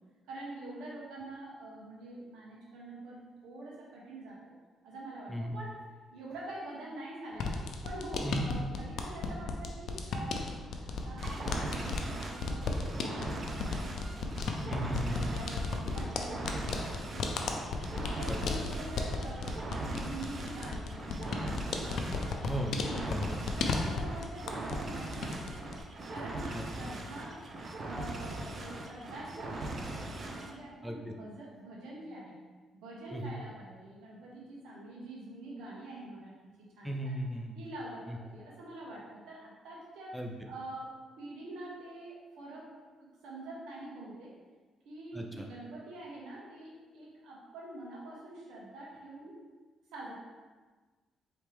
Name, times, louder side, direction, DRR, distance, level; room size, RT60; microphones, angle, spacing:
voice 1, 0.3-4.5 4.8-5.8 6.1-7.5 7.8-14.7 15.0-17.5 18.0-23.3 23.6-25.8 26.1-27.4 27.8-32.4 32.7-37.1 37.5-40.2 40.5-40.9 41.2-42.7 43.0-44.3 44.8-49.4 49.9-50.2, right 2 dB, 85° right, -4 dB, 1.3 m, -45 dB
sound 1, 7.3-24.9 25.1-25.8, left 3 dB, 70° left, 0.5 m, -35 dB
sound 2, 11.2-30.6, right 2 dB, 45° right, 0.7 m, -40 dB
voice 2, 14.7-15.4 18.3-18.4 22.4-23.5 26.5-26.6 30.8-31.1 33.1-33.3 36.8-37.6 38.1-38.2 40.1-40.3 45.1-45.5, right 1 dB, ahead, 1 dB, 0.5 m, -36 dB
4.5 x 3.2 x 3.5 m, 1.3 s
cardioid pair, 90°, 0 cm